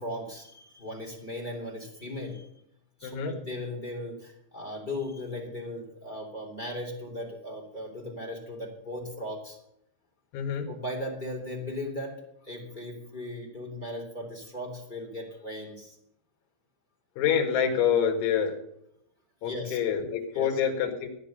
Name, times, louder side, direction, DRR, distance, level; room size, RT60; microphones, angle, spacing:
voice 1, 0.0-2.5 3.0-9.6 10.7-12.2 12.4-16.0 19.4-19.8 20.3-20.6, left 1 dB, 15° left, 0 dB, 2.0 m, -37 dB
voice 2, 3.0-3.3 10.3-10.7 17.2-18.6 19.4-21.1, left 8 dB, 70° left, 4 dB, 4.1 m, -26 dB
14.5 x 9.8 x 6.7 m, 0.79 s
omnidirectional pair, 5.8 m